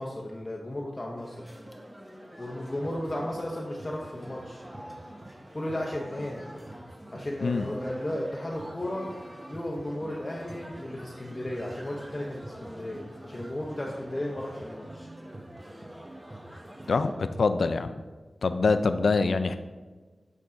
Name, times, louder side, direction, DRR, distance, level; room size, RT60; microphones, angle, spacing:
voice 1, 0.0-1.4 2.4-4.7 5.5-6.5 7.1-9.1 9.5-15.1, left 1 dB, 35° left, -2 dB, 0.8 m, -34 dB
sound 1, 1.2-17.1, equal, 15° right, 0.9 m, -47 dB
sound 2, 2.5-17.2, right 1 dB, 40° right, 0.6 m, -48 dB
voice 2, 16.9-18.0 18.4-19.6, left 4 dB, 85° left, 10 dB, 0.3 m, -25 dB
8.2 x 3.8 x 3.8 m, 1.3 s
cardioid pair, 45°, 0 cm